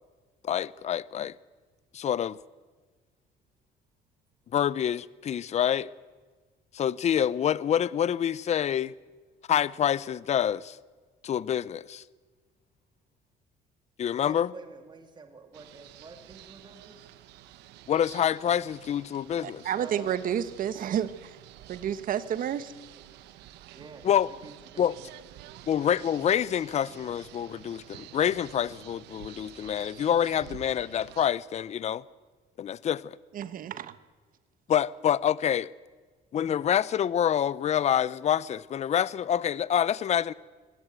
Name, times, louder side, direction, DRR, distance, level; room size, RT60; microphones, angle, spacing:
voice 1, 0.4-1.3 1.9-2.4 4.5-5.9 6.7-8.9 9.5-10.8 11.2-12.0 14.0-14.5 17.9-19.6 24.0-24.3 24.8-24.9 25.7-32.0 32.6-33.2 34.7-35.7 36.3-40.3, left 9 dB, 40° left, 0.6 m, -27 dB
voice 2, 8.4-8.8 14.2-17.1 19.8-20.3 23.1-23.2 23.7-25.1, right 3 dB, 25° right, 2.3 m, -49 dB
sound 1, 15.5-31.3, right 13 dB, 90° right, 1.1 m, -50 dB
voice 3, 19.4-21.3 21.7-22.7 33.3-33.9, right 9 dB, 55° right, 1.2 m, -30 dB
24.0 x 17.0 x 8.1 m
cardioid pair, 110°, 17 cm